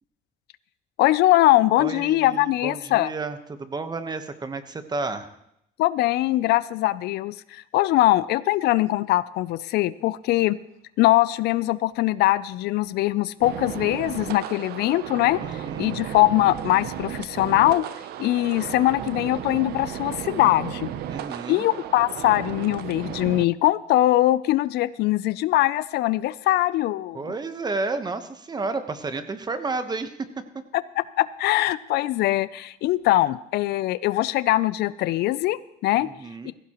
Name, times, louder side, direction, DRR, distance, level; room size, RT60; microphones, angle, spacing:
voice 1, 1.0-3.1 5.8-10.6 11.0-15.4 15.8-17.9 18.2-20.9 21.5-27.2 31.2-36.1 36.4-36.5, left 16 dB, 75° left, 17 dB, 0.4 m, -22 dB
voice 2, 1.8-5.3 15.4-16.0 21.1-21.7 27.1-30.3 36.0-36.5, right 3 dB, 25° right, 9 dB, 1.0 m, -31 dB
sound 1, 13.4-23.5, right 11 dB, 70° right, 0.6 m, -34 dB
16.5 x 15.0 x 3.0 m, 0.78 s
cardioid pair, 110°, 17 cm